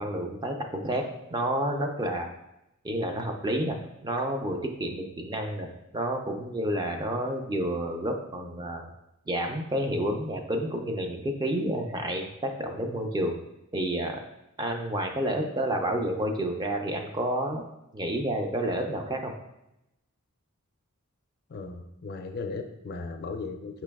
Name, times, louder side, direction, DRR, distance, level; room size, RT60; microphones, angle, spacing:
voice 1, 0.0-2.3 2.8-3.8 4.0-5.7 5.9-8.9 9.3-13.4 13.7-14.1 14.6-17.6 17.9-19.3, right 1 dB, 20° right, 4 dB, 0.4 m, -30 dB
voice 2, 21.5-23.8, left 4 dB, 45° left, 6 dB, 0.4 m, -36 dB
5.1 x 3.0 x 3.4 m, 0.88 s
head